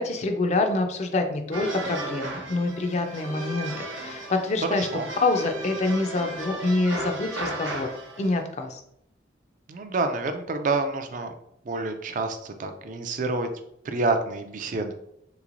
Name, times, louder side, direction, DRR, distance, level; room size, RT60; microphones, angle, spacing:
voice 1, 0.0-3.7 4.0-4.9 5.2-7.9 8.2-8.8, left 2 dB, 35° left, 5 dB, 0.4 m, -26 dB
sound 1, 1.5-8.4, right 2 dB, 85° right, 0.8 m, -35 dB
voice 2, 4.7-5.1 9.7-11.3 11.6-13.5 13.8-14.9, right 3 dB, 45° right, 7 dB, 0.3 m, -28 dB
3.4 x 3.0 x 2.5 m, 0.77 s
head